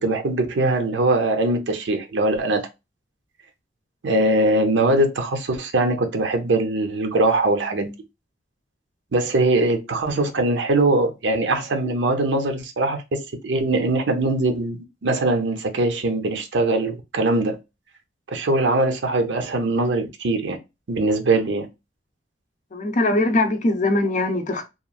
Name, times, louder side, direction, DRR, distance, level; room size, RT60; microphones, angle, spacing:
voice 1, 0.0-2.6 4.0-7.9 9.1-17.6 18.3-20.6 20.9-21.7, right 2 dB, 80° right, 0.6 m, -21 dB
voice 2, 22.7-24.7, left 2 dB, 45° left, 0.5 m, -21 dB
3.0 x 2.4 x 2.3 m
head